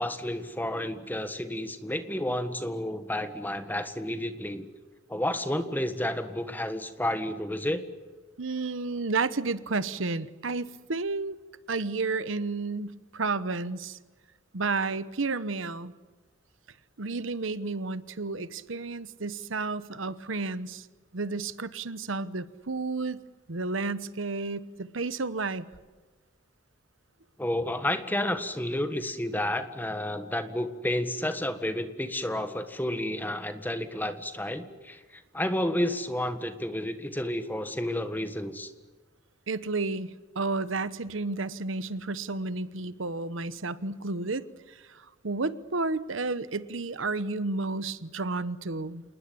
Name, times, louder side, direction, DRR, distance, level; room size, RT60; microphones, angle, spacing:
voice 1, 0.0-4.7 5.1-7.8 27.4-38.7, left 1 dB, 10° left, 9 dB, 1.6 m, -31 dB
voice 2, 8.4-11.4 11.7-14.0 14.5-15.9 17.0-20.9 21.1-23.2 23.5-25.6 39.5-49.0, right 3 dB, 80° right, 15 dB, 1.0 m, -31 dB
27.5 x 20.0 x 8.6 m, 1.3 s
head